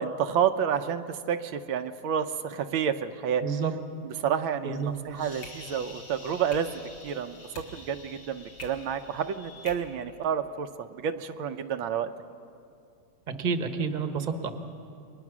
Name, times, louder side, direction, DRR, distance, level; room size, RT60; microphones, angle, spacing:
voice 1, 0.0-3.4 4.0-7.4 7.7-12.1, right 8 dB, 80° right, 8 dB, 1.6 m, -30 dB
voice 2, 3.4-3.7 4.6-4.9 13.4-14.5, right 5 dB, 25° right, 6 dB, 1.1 m, -29 dB
sound 1, 4.7-9.7, left 2 dB, 70° left, 3.3 m, -46 dB
29.5 x 22.5 x 6.1 m, 2.5 s
omnidirectional pair, 2.2 m